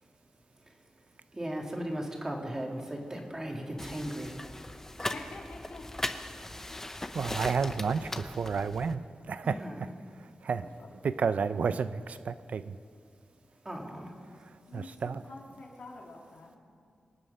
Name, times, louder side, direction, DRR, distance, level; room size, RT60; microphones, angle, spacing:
voice 1, 1.3-4.4 9.4-9.8 13.6-14.1, right 1 dB, 20° right, 0 dB, 2.5 m, -37 dB
sound 1, 3.8-9.0, left 1 dB, 15° left, 0.8 m, -39 dB
voice 2, 5.0-6.1 6.7-6.8 10.8-10.9 14.7-16.6, left 3 dB, 75° left, -2 dB, 3.3 m, -47 dB
voice 3, 7.1-9.9 10.2-10.7 11.0-12.8 14.7-15.2, right 5 dB, 70° right, 13 dB, 0.5 m, -31 dB
25.5 x 9.3 x 5.5 m, 2.2 s
wide cardioid pair, 95°, 3 cm